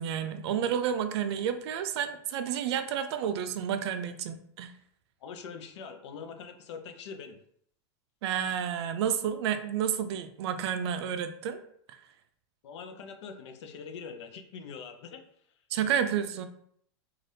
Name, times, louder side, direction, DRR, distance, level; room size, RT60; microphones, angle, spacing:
voice 1, 0.0-4.7 8.2-11.6 15.7-16.5, right 8 dB, 70° right, 10 dB, 0.4 m, -30 dB
voice 2, 5.2-7.4 12.6-15.2, left 6 dB, 80° left, 6 dB, 0.6 m, -43 dB
3.2 x 2.4 x 2.7 m, 0.66 s
supercardioid pair, 150°, 15 cm